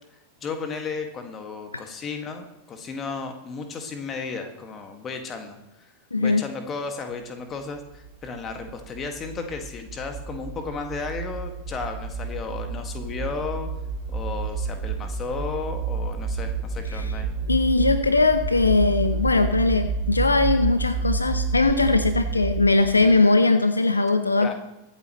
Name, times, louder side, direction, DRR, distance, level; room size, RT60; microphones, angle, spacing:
voice 1, 0.4-5.9 6.2-13.7 14.1-17.3 24.4-24.5, left 4 dB, 25° left, 5 dB, 1.9 m, -34 dB
voice 2, 6.1-6.4 16.9-17.1 17.5-24.5, left 3 dB, 80° left, 10 dB, 0.8 m, -20 dB
sound 1, 7.9-23.2, right 4 dB, 35° right, 2.3 m, -30 dB
23.0 x 8.3 x 3.1 m, 0.92 s
figure-of-eight pair, 90°, 0 cm